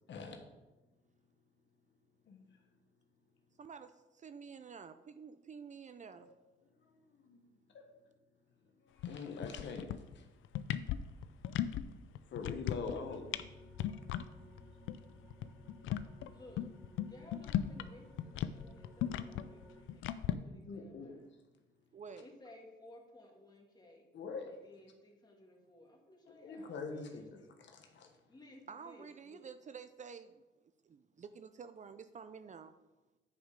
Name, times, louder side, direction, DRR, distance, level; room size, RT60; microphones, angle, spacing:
voice 1, 0.1-0.4 2.3-2.5 6.2-6.3 7.2-7.4 7.7-7.8 8.8-9.9 10.1-10.3 12.3-13.2 20.6-21.2 24.1-24.5 26.4-28.1, left 4 dB, 65° left, 4 dB, 1.3 m, -44 dB
voice 2, 3.6-6.3 21.9-22.3 28.7-30.4 30.8-32.7, right 6 dB, 40° right, 11 dB, 0.5 m, -50 dB
sound 1, 9.0-9.2 9.4-10.1 10.4-11.8 12.1-13.0 13.3-13.5 13.7-14.2 14.6-14.7 14.9-15.0 15.3-17.9 18.2-20.3, left 11 dB, 80° left, 0.5 m, -36 dB
sound 2, 12.5-19.8, left 1 dB, 15° right, 2.9 m, -57 dB
voice 3, 16.3-16.7 17.0-21.2 22.2-24.1 24.5-27.5 28.3-29.5, left 1 dB, 20° left, 0 dB, 2.3 m, -58 dB
9.3 x 5.1 x 5.2 m, 1.1 s
cardioid pair, 90°, 20 cm